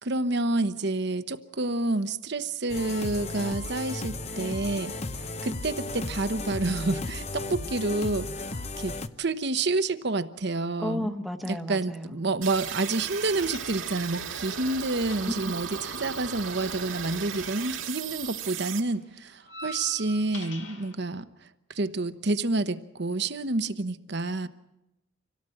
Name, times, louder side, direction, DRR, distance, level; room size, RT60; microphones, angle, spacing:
voice 1, 0.0-4.9 5.4-11.1 11.4-21.3 21.7-24.5, right 2 dB, 55° right, 11 dB, 1.0 m, -29 dB
sound 1, 2.7-9.1, left 2 dB, 30° left, 0.8 m, -35 dB
voice 2, 10.8-12.2 15.2-15.3, left 1 dB, ahead, 4 dB, 1.2 m, -32 dB
sound 2, 12.4-18.8, right 8 dB, 80° right, 2.0 m, -36 dB
sound 3, 13.4-14.2 14.4-17.8 18.1-20.9, left 1 dB, 60° left, 2.8 m, -45 dB
26.0 x 17.5 x 7.8 m, 0.93 s
head